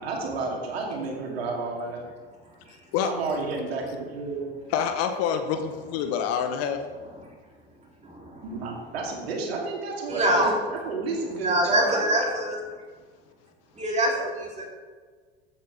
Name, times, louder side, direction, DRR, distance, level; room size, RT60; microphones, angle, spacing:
voice 1, 0.0-2.0 3.0-4.5 8.4-12.1, right 3 dB, 75° right, 0 dB, 2.6 m, -31 dB
voice 2, 4.7-6.8, left 8 dB, 50° left, 7 dB, 1.1 m, -26 dB
voice 3, 8.0-8.4 10.1-10.5 11.2-12.6 13.7-14.7, right 1 dB, 20° right, -2 dB, 3.3 m, -25 dB
14.5 x 8.7 x 3.5 m, 1.5 s
figure-of-eight pair, 75°, 31 cm